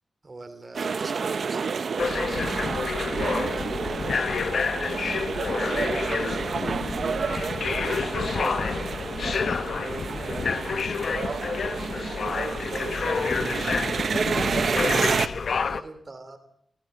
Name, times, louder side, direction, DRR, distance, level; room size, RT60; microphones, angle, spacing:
voice 1, 0.2-2.0 9.8-10.1 14.6-15.2 15.4-16.4, right 2 dB, 35° right, 8 dB, 2.7 m, -42 dB
sound 1, 0.7-15.3, right 5 dB, 70° right, 1.0 m, -29 dB
sound 2, 2.0-15.8, left 5 dB, 70° left, 1.0 m, -29 dB
voice 2, 3.3-4.3 7.3-12.0 13.8-14.5, left 2 dB, 35° left, 7 dB, 6.0 m, -46 dB
25.0 x 16.0 x 7.7 m, 0.70 s
wide cardioid pair, 115°, 0 cm